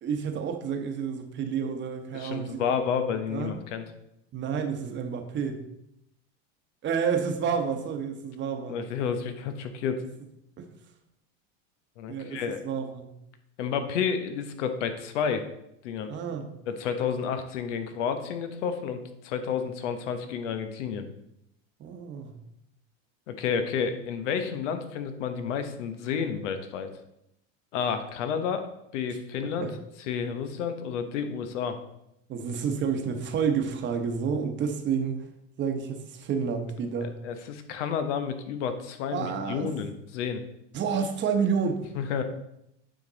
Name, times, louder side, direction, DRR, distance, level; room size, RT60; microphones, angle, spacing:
voice 1, 0.0-2.7 3.3-3.6 4.3-5.6 6.8-8.8 10.6-10.7 12.1-12.4 12.6-13.1 16.1-16.5 21.8-22.3 29.6-29.7 32.3-35.2 35.6-37.1 39.1-39.7 40.7-41.8, right 6 dB, 30° right, 5 dB, 1.1 m, -29 dB
voice 2, 2.1-3.8 8.7-10.0 12.0-12.6 13.6-15.4 15.8-16.1 16.7-21.1 23.3-26.9 27.7-29.7 30.0-31.8 37.0-40.4 41.9-42.2, left 7 dB, 75° left, 8 dB, 1.1 m, -30 dB
9.1 x 5.1 x 4.0 m, 0.81 s
supercardioid pair, 130°, 36 cm